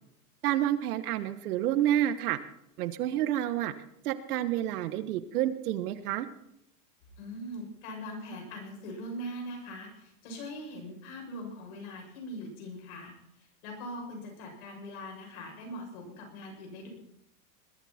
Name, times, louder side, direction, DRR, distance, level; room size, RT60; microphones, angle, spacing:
voice 1, 0.4-2.4 2.8-3.7 4.0-6.3, right 12 dB, 75° right, 13 dB, 1.4 m, -29 dB
voice 2, 7.2-13.1 13.4-16.9, equal, 65° left, 1 dB, 7.8 m, -41 dB
21.0 x 13.5 x 4.4 m, 0.77 s
supercardioid pair, 130°, 46 cm